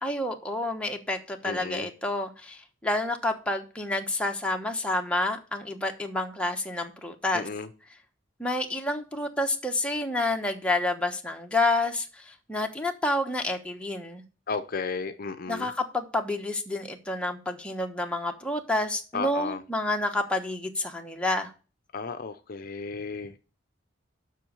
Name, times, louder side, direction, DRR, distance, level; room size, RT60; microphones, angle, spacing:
voice 1, 0.0-7.5 8.4-14.2 15.5-21.5, left 2 dB, 5° left, 1.1 m, -29 dB
voice 2, 1.4-1.9 7.3-7.7 14.5-15.7 19.1-19.6 21.9-23.3, left 4 dB, 50° left, 0.6 m, -33 dB
7.6 x 6.2 x 6.9 m
head